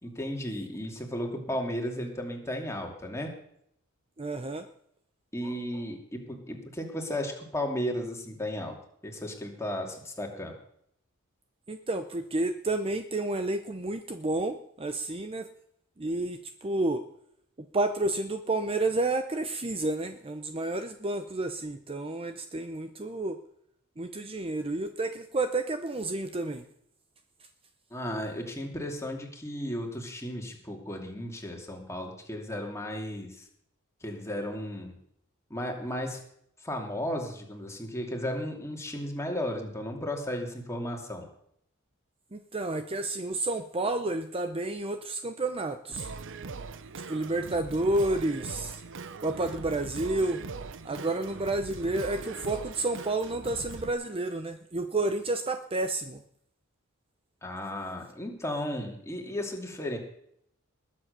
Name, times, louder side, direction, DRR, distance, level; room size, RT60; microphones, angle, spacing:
voice 1, 0.0-3.3 5.3-8.8 9.0-10.5 27.9-33.5 34.0-34.9 35.5-36.2 36.6-41.3 57.4-60.0, left 1 dB, 15° left, 1 dB, 2.7 m, -34 dB
voice 2, 4.2-4.7 11.7-15.5 16.0-17.0 17.7-23.4 24.0-26.7 42.3-46.1 47.1-48.8 49.2-50.4 50.8-56.2, right 2 dB, 25° right, 8 dB, 0.7 m, -30 dB
Singing, 45.9-53.9, right 4 dB, 60° right, 0.8 m, -41 dB
20.5 x 7.5 x 6.7 m, 0.71 s
head